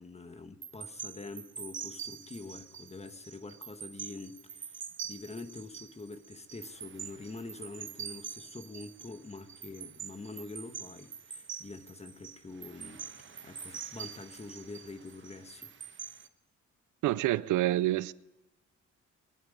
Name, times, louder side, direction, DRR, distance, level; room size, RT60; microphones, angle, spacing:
voice 1, 0.0-13.1 13.4-15.7, left 3 dB, 20° left, 1.3 m, -45 dB
sound 1, 0.6-16.3, right 7 dB, 40° right, 1.1 m, -45 dB
voice 2, 17.0-18.1, right 15 dB, 80° right, 0.5 m, -27 dB
22.0 x 10.5 x 5.1 m
cardioid pair, 90°, 30 cm